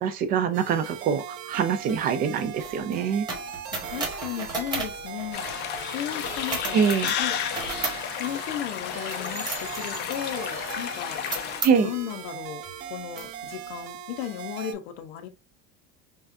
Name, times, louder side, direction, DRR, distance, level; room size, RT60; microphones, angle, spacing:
voice 1, 0.0-3.3 6.7-7.2 11.6-11.9, right 7 dB, 30° right, 0.4 m, -24 dB
sound 1, 0.5-14.7, right 8 dB, 50° right, 0.9 m, -40 dB
sound 2, 1.5-5.8 6.2-12.1 12.6-12.8 13.1-13.8, right 3 dB, 15° right, 1.2 m, -36 dB
voice 2, 3.7-5.4 5.9-6.8 7.2-7.3 8.1-11.2 11.8-12.6 12.9-15.3, left 11 dB, 80° left, 0.9 m, -35 dB
sound 3, 5.3-11.6, left 9 dB, 35° left, 0.4 m, -32 dB
5.5 x 2.4 x 2.5 m
cardioid pair, 170°, 30 cm